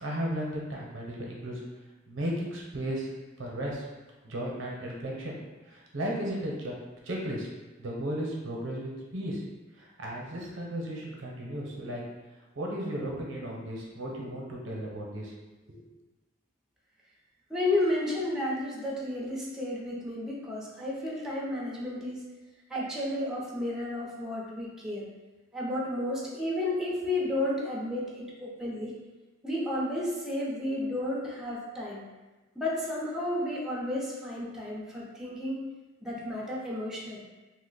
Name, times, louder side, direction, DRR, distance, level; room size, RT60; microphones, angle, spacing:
voice 1, 0.0-1.6 2.1-3.1 3.4-3.8 4.2-5.4 5.7-6.7 7.0-7.5 7.8-9.4 9.8-12.0 12.6-15.3 15.7-15.8, equal, 85° right, -2 dB, 0.7 m, -35 dB
voice 2, 17.5-22.2 22.7-25.1 25.5-28.9 29.4-32.0 32.6-35.6 36.0-37.2, left 1 dB, ahead, -5 dB, 0.6 m, -32 dB
2.8 x 2.1 x 3.9 m, 1.2 s
head